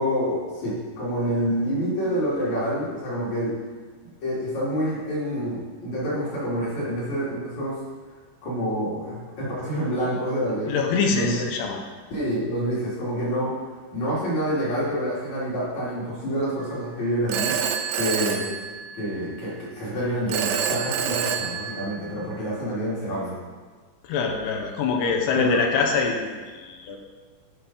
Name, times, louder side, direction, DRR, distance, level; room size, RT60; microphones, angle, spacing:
voice 1, 0.0-3.5 4.2-7.8 8.4-10.7 11.1-11.4 12.1-13.5 13.9-17.5 18.0-18.5 18.9-23.3 25.3-25.6, equal, 45° left, -8 dB, 3.1 m, -27 dB
voice 2, 10.7-11.8 24.0-27.0, left 5 dB, 80° left, 2 dB, 2.7 m, -24 dB
Telephone, 17.3-19.3 20.3-22.2, right 8 dB, 90° right, 3.1 m, -27 dB
11.5 x 4.7 x 5.3 m, 1.5 s
omnidirectional pair, 5.3 m